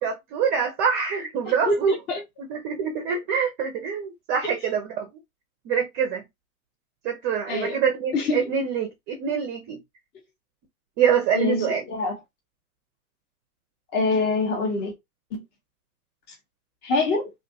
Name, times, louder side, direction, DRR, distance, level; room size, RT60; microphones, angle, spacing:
voice 1, 0.0-1.9 2.4-5.1 5.6-6.2 7.0-9.8 11.0-11.8, right 7 dB, 25° right, 0.5 m, -25 dB
voice 2, 1.5-2.2 4.4-4.5 7.5-7.8 8.1-8.4 11.3-12.1 13.9-14.9 15.3-15.4 16.8-17.3, left 3 dB, 25° left, 0.7 m, -25 dB
2.6 x 2.2 x 2.7 m
hypercardioid pair, 110°, 44 cm